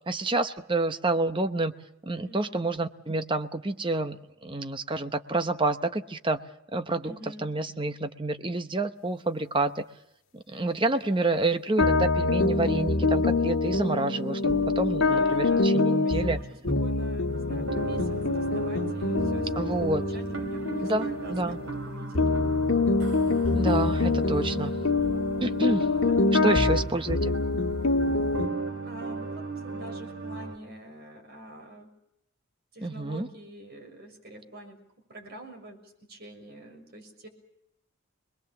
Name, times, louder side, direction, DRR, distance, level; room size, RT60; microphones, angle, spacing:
voice 1, 0.1-1.7 2.1-4.2 4.4-6.4 6.7-9.8 10.3-16.4 17.4-17.7 19.6-20.0 20.8-21.6 23.5-24.7 25.4-25.9 26.4-27.4 32.8-33.3, right 2 dB, 25° right, 9 dB, 0.9 m, -28 dB
voice 2, 2.2-2.6 7.0-7.5 15.0-22.4 25.9-27.0 28.8-31.9 32.7-34.8 35.1-37.3, right 1 dB, 45° right, 3 dB, 6.4 m, -46 dB
sound 1, 11.8-21.9 22.1-28.5, left 3 dB, 70° left, 1.9 m, -25 dB
sound 2, 17.3-30.6, right 3 dB, 65° right, 3.1 m, -37 dB
26.0 x 21.0 x 7.1 m, 0.81 s
head